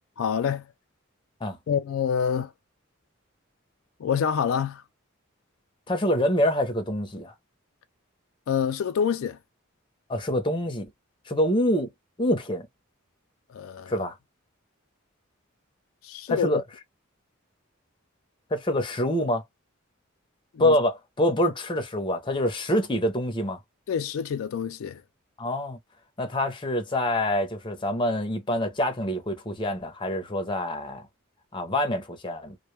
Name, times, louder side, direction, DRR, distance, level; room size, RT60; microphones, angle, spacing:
voice 1, 0.2-0.6 1.7-2.5 4.0-4.8 8.5-9.4 13.5-14.0 16.0-16.6 20.5-20.8 23.9-25.0, left 7 dB, 80° left, 0.4 m, -27 dB
voice 2, 5.9-7.3 10.1-10.9 11.3-11.9 12.2-12.7 13.9-14.1 16.3-16.6 18.5-19.4 20.6-23.6 25.4-25.8 26.2-31.1 31.5-32.6, left 1 dB, 25° left, 0.6 m, -26 dB
2.2 x 2.1 x 3.0 m
head